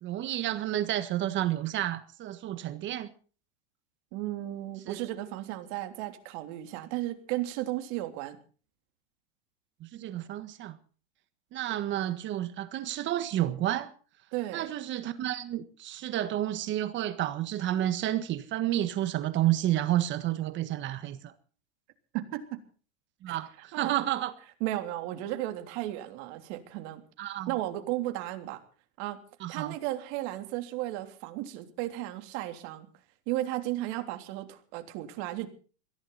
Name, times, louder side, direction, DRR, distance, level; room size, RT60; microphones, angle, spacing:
voice 1, 0.0-3.1 4.9-5.0 9.8-10.8 11.5-13.9 14.5-21.3 23.2-24.3 27.2-27.5 29.4-29.7, right 13 dB, 35° right, 1.5 m, -30 dB
voice 2, 4.1-8.4 14.3-14.7 22.1-22.6 23.3-23.4 23.7-24.1 24.6-27.0 27.5-28.6 29.0-29.2 29.5-32.9 33.3-35.5, right 15 dB, 50° right, 3.3 m, -34 dB
22.0 x 15.5 x 4.1 m
supercardioid pair, 140°, 34 cm